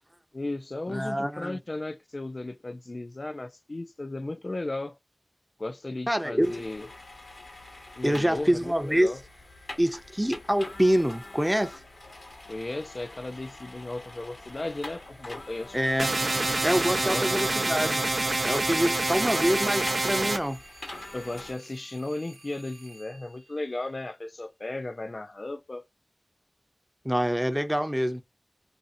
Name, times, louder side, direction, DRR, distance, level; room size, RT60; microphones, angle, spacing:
voice 1, 0.3-5.0 5.6-6.9 8.0-9.2 12.5-15.8 17.1-17.3 19.2-19.5 21.1-25.8, left 2 dB, 50° left, 0.3 m, -35 dB
voice 2, 0.9-1.6 6.1-6.6 8.0-9.1 9.8-11.8 15.7-16.1 16.6-18.1 18.4-20.6 27.0-28.2, equal, 5° right, 0.6 m, -26 dB
sound 1, 6.4-21.5, left 2 dB, 65° left, 0.9 m, -45 dB
sound 2, 16.0-20.4, right 2 dB, 55° right, 0.3 m, -26 dB
sound 3, 16.0-24.2, right 2 dB, 75° right, 0.8 m, -53 dB
2.7 x 2.6 x 2.4 m
cardioid pair, 40°, 0 cm